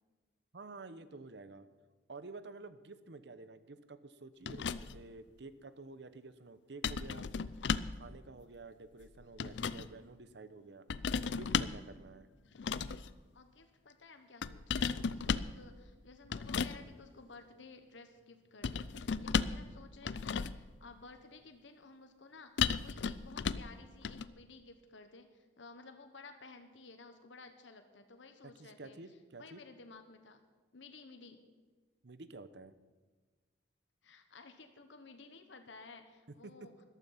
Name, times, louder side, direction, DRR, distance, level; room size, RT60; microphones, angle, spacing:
voice 1, 0.5-1.7 2.1-7.3 7.9-10.9 11.3-12.3 28.6-29.6 32.0-32.7 36.4-36.5, right 3 dB, 65° right, 13 dB, 0.8 m, -50 dB
sound 1, 4.5-5.1 6.8-8.0 9.0-9.9 10.9-11.9 12.6-13.1 14.4-15.6 16.3-16.8 18.6-19.7 20.0-20.7 22.6-23.7 24.0-24.3, left 6 dB, 70° left, 0.5 m, -35 dB
voice 2, 13.3-29.0 29.4-30.4 30.7-31.4 34.0-36.7, left 3 dB, 90° left, 7 dB, 1.2 m, -55 dB
14.0 x 12.0 x 5.8 m, 1.4 s
head